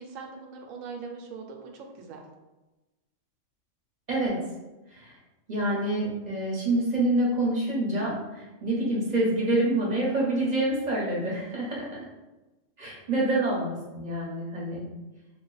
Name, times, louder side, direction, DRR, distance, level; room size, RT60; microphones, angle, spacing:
voice 1, 0.0-2.3 13.2-13.4, right 5 dB, 90° right, 2 dB, 1.0 m, -41 dB
voice 2, 5.5-11.9 12.8-14.8, right 1 dB, 40° right, -5 dB, 0.9 m, -27 dB
3.1 x 2.1 x 3.9 m, 1.1 s
omnidirectional pair, 1.3 m